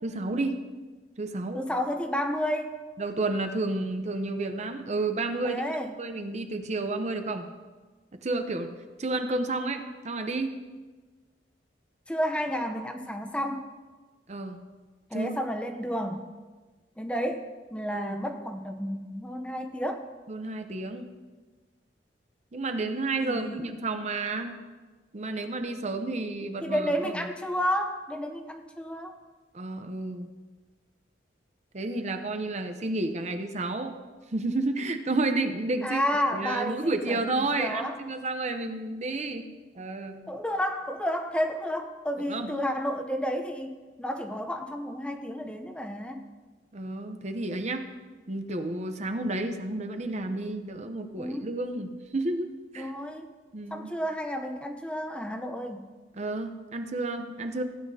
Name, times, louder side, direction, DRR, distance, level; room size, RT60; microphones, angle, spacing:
voice 1, 0.0-0.6 1.2-1.6 3.0-5.6 6.0-7.5 8.1-8.7 9.0-10.6 14.3-14.6 15.1-15.3 17.9-18.2 20.3-21.1 22.5-24.6 25.1-27.2 29.5-30.3 31.7-34.0 34.3-36.0 36.3-39.5 39.7-40.2 42.3-42.5 46.7-47.9 48.3-52.9 53.5-53.9 56.1-57.6, right 2 dB, 40° right, 7 dB, 0.7 m, -31 dB
voice 2, 1.5-2.8 5.4-6.0 12.1-13.7 15.1-16.3 17.0-17.5 17.7-20.0 23.2-23.7 26.6-29.1 35.8-38.0 40.3-43.7 44.0-46.2 51.2-51.5 52.8-53.3 53.7-55.9, equal, 5° left, 5 dB, 0.6 m, -31 dB
16.0 x 9.3 x 2.8 m, 1.3 s
head